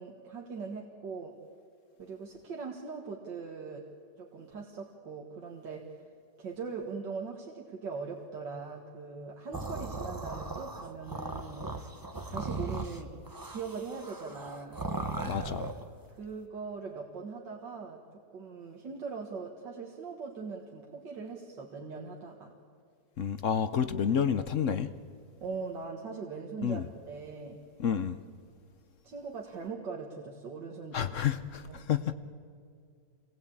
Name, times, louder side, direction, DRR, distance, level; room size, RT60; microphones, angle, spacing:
voice 1, 0.0-1.4 2.0-3.9 4.2-6.0 6.4-11.7 12.3-13.2 13.5-14.8 16.2-18.0 18.3-22.5 25.4-27.6 29.0-31.2 31.7-31.9, right 5 dB, 85° right, 0 dB, 2.3 m, -41 dB
sound 1, 9.5-15.9, right 2 dB, 15° right, 0.9 m, -38 dB
voice 2, 15.2-15.7 23.2-24.9 26.6-26.8 27.8-28.2 30.9-32.1, left 8 dB, 55° left, 11 dB, 0.9 m, -29 dB
26.0 x 18.5 x 8.6 m, 2.3 s
omnidirectional pair, 1.9 m